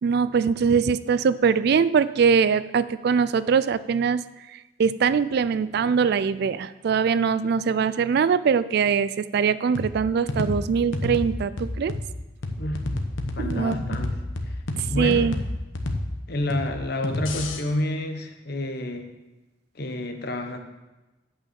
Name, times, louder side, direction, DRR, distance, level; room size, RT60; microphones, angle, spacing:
voice 1, 0.0-4.2 4.5-11.9 13.4-13.8 14.8-15.3, right 6 dB, 55° right, 16 dB, 0.3 m, -22 dB
sound 1, 9.7-17.6, left 1 dB, 85° left, 1.0 m, -30 dB
voice 2, 13.3-14.1 14.5-14.6 14.9-15.3 16.3-19.1 19.7-20.6, left 1 dB, 55° left, 5 dB, 1.0 m, -29 dB
8.9 x 5.6 x 7.0 m, 1.1 s
head